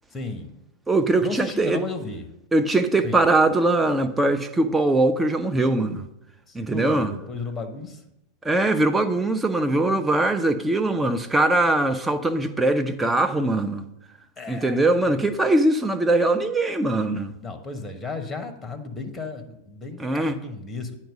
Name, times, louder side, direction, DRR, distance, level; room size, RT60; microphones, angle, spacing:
voice 1, 0.1-0.5 1.2-2.2 3.0-3.2 6.5-8.0 14.4-15.2 17.4-20.9, left 3 dB, 15° left, 0.9 m, -34 dB
voice 2, 0.9-1.8 2.5-6.0 6.5-7.1 8.4-13.8 14.5-17.3 20.0-20.4, right 2 dB, 10° right, 0.6 m, -21 dB
9.3 x 4.3 x 6.4 m
figure-of-eight pair, 90°, 0 cm